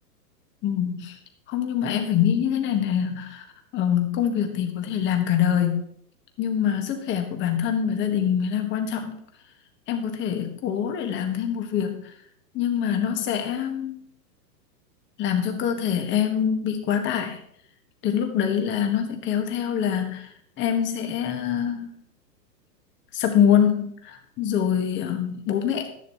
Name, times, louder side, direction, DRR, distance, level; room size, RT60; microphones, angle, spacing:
voice 1, 0.6-1.1 1.5-3.4 3.7-5.8 6.4-9.2 9.9-12.1 12.5-14.0 15.2-17.4 18.0-20.3 20.6-22.0 23.1-25.9, left 9 dB, 25° left, 5 dB, 1.5 m, -24 dB
12.5 x 10.5 x 3.0 m, 0.67 s
hypercardioid pair, 140°, 50 cm